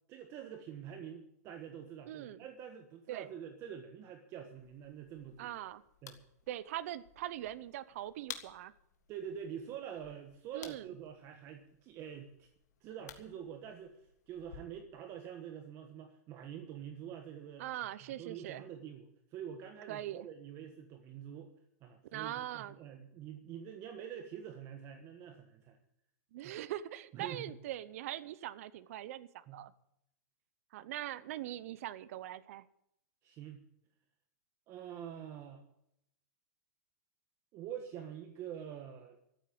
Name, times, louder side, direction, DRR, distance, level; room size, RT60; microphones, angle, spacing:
voice 1, 0.1-5.5 6.0-6.2 9.1-12.5 12.8-17.7 18.2-21.5 21.8-25.8 26.4-26.6 27.1-27.6 29.5-29.6 33.2-33.6 34.7-35.6 37.5-39.2, right 9 dB, 30° right, 6 dB, 1.3 m, -46 dB
voice 2, 2.1-2.4 3.1-3.3 5.4-5.8 6.5-8.7 10.5-10.9 17.6-18.6 19.9-20.3 22.1-22.7 26.3-29.7 30.7-32.6, right 13 dB, 60° right, 16 dB, 0.7 m, -42 dB
sound 1, 4.6-14.6, left 9 dB, 85° left, 1.9 m, -54 dB
14.0 x 8.4 x 9.4 m, 0.78 s
supercardioid pair, 150°, 9 cm